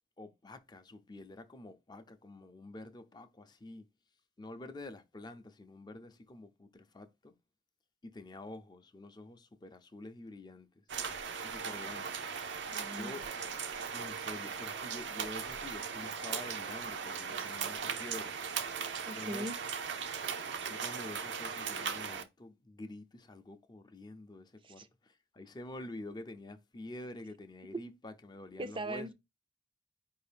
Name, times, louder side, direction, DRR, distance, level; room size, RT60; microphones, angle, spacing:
voice 1, 0.2-3.9 4.4-7.3 8.0-10.8 11.4-12.2 12.9-13.2 13.9-18.4 19.1-19.5 20.6-29.1, left 2 dB, 25° left, 0.5 m, -48 dB
sound 1, 10.9-22.2, right 6 dB, 75° right, 0.6 m, -38 dB
voice 2, 12.7-13.2 17.4-17.5 19.1-19.6 24.6-24.9 28.6-29.1, right 1 dB, 30° right, 0.4 m, -40 dB
4.7 x 2.6 x 3.3 m
head